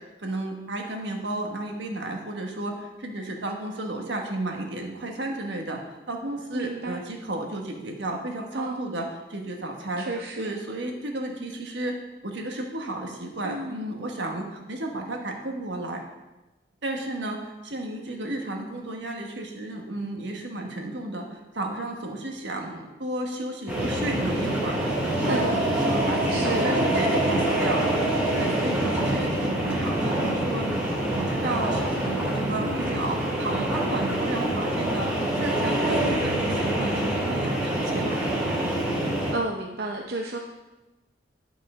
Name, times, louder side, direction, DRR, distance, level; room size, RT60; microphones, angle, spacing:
voice 1, 0.2-5.8 6.1-11.9 12.2-16.0 16.8-35.1 35.4-38.3, right 1 dB, 80° right, 2 dB, 1.4 m, -33 dB
voice 2, 6.5-7.0 8.5-8.9 10.0-10.5 13.4-13.9 25.1-25.6 26.3-26.7 32.6-32.9 39.3-40.4, right 2 dB, 55° right, 1 dB, 0.6 m, -31 dB
sound 1, 23.7-39.3, right 1 dB, 10° right, 2.2 m, -25 dB
9.7 x 5.6 x 5.0 m, 1.1 s
head